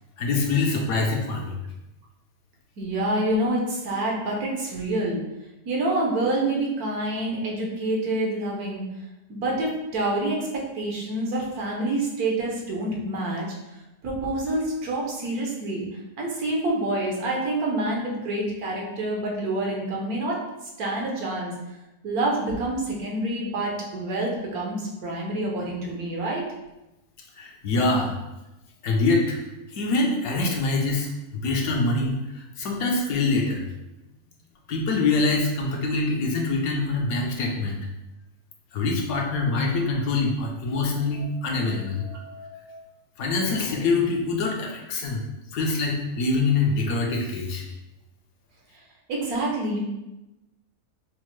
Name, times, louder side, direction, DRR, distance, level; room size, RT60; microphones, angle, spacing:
voice 1, 0.2-1.5 27.4-28.1 28.8-29.4 29.7-33.6 34.7-37.8 38.7-42.8 43.2-45.2 45.5-47.6, left 3 dB, 75° left, 0 dB, 1.1 m, -25 dB
voice 2, 2.8-5.2 5.7-8.9 9.3-13.8 14.0-15.9 16.2-20.4 20.8-21.5 22.0-26.4 49.1-49.8, right 1 dB, 80° right, -2 dB, 1.4 m, -27 dB
5.2 x 2.1 x 3.1 m, 0.97 s
omnidirectional pair, 1.6 m